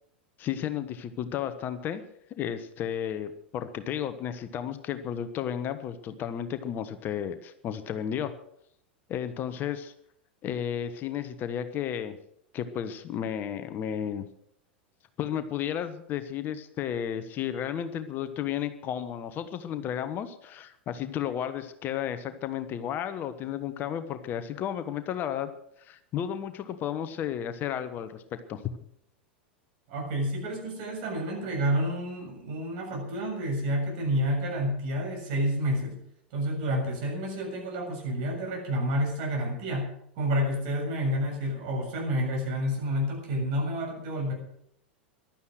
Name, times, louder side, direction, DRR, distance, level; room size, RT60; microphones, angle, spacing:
voice 1, 0.4-2.0 2.4-8.3 9.1-9.9 10.4-12.2 12.5-14.3 15.2-25.5 25.8-28.2 28.5-28.6, left 9 dB, 35° left, 10 dB, 1.2 m, -33 dB
voice 2, 29.9-36.0 36.3-39.9 40.2-44.3, equal, 55° right, 1 dB, 7.2 m, -29 dB
15.5 x 12.0 x 6.4 m, 0.73 s
figure-of-eight pair, 85°, 6 cm